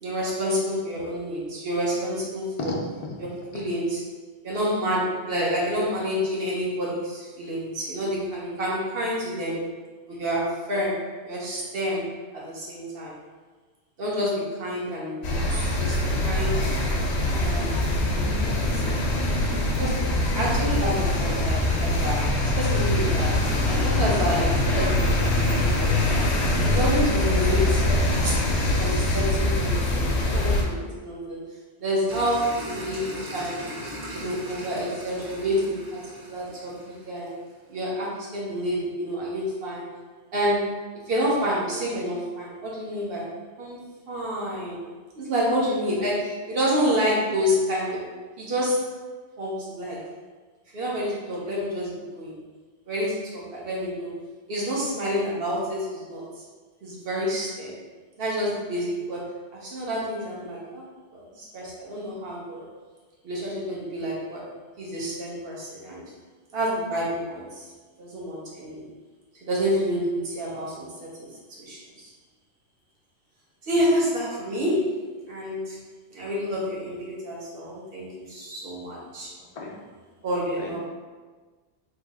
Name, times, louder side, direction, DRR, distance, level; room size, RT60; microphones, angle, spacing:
voice 1, 0.0-2.7 3.5-4.0 4.4-9.6 10.1-11.0 11.2-12.0 12.3-13.1 14.0-15.9 16.2-16.7 17.0-17.1 17.4-17.7 18.7-19.0 19.8-23.3 23.7-25.9 26.6-27.8 28.2-28.4 28.7-31.4 31.8-33.6 34.1-37.3 37.7-39.8 40.3-40.6 41.1-43.3 43.6-43.8 44.1-44.8 45.2-48.0 48.4-48.8 49.4-50.0 50.7-52.4 52.9-53.1 53.5-54.1 54.5-56.2 56.8-57.7 58.2-59.2 59.6-60.8 61.1-62.7 63.2-64.4 64.8-66.0 66.5-67.7 68.0-68.8 69.4-71.3 71.6-72.1 73.6-74.8 75.3-75.8 76.1-79.3 80.2-80.8, equal, 60° right, -5 dB, 1.0 m, -28 dB
voice 2, 3.2-3.7 5.6-5.7 79.4-79.8 80.6-80.8, left 3 dB, 50° left, -1 dB, 0.4 m, -37 dB
sound 1, 15.2-30.6, left 1 dB, 75° left, 0.9 m, -23 dB
sound 2, 32.1-37.5, equal, 35° right, 0.4 m, -38 dB
3.2 x 2.0 x 3.4 m, 1.4 s
omnidirectional pair, 1.1 m